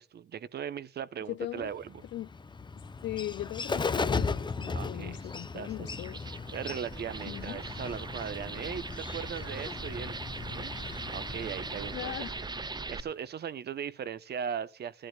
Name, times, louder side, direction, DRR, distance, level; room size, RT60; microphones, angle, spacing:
voice 1, 0.0-2.0 4.7-5.3 5.5-6.0 6.5-10.2 10.5-10.7 11.1-12.1 12.4-15.1, right 8 dB, 55° right, 1.0 m, -39 dB
voice 2, 1.3-1.7 2.1-2.3 3.0-6.2 7.2-7.6 11.9-12.3, left 14 dB, 70° left, 0.5 m, -38 dB
Bird, 1.6-13.1, left 4 dB, 25° left, 0.8 m, -37 dB
sound 1, 1.9-2.0 2.4-3.9 4.5-5.0 5.8-6.2 6.5-6.6 7.5-8.1 8.8-10.9 11.6-11.7, right 6 dB, 80° right, 7.1 m, -59 dB
sound 2, 5.9-13.0, right 4 dB, 20° right, 0.7 m, -40 dB
16.5 x 11.5 x 2.4 m
cardioid pair, 90°, 20 cm